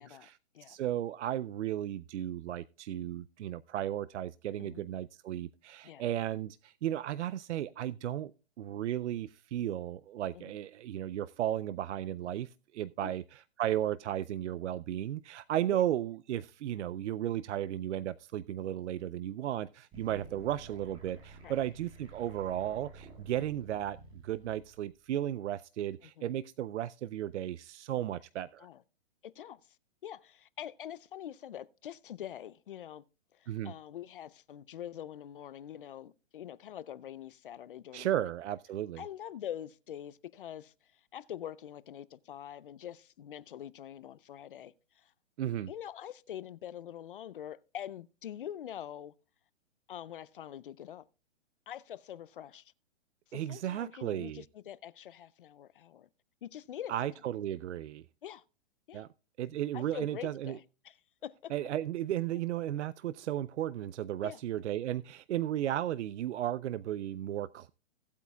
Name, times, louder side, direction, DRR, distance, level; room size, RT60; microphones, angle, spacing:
voice 1, 0.0-0.4 0.7-8.3 8.6-24.0 24.2-28.7 33.5-33.7 37.9-39.0 45.4-45.7 53.3-54.4 56.9-58.0 58.9-59.1 59.4-60.6 61.5-67.7, right 12 dB, 75° right, 0.5 m, -34 dB
sound 1, 19.9-25.0, right 4 dB, 15° right, 1.4 m, -51 dB
voice 2, 29.2-29.6 30.0-33.0 33.3-38.3 39.0-40.7 41.1-45.1 45.7-49.1 49.9-51.0 51.7-52.7 53.3-56.1 56.4-56.9 58.2-58.4 58.9-59.0 59.7-61.0 61.2-61.5 64.2-64.4, left 10 dB, 50° left, 0.4 m, -45 dB
17.0 x 8.3 x 2.3 m
hypercardioid pair, 160°, 36 cm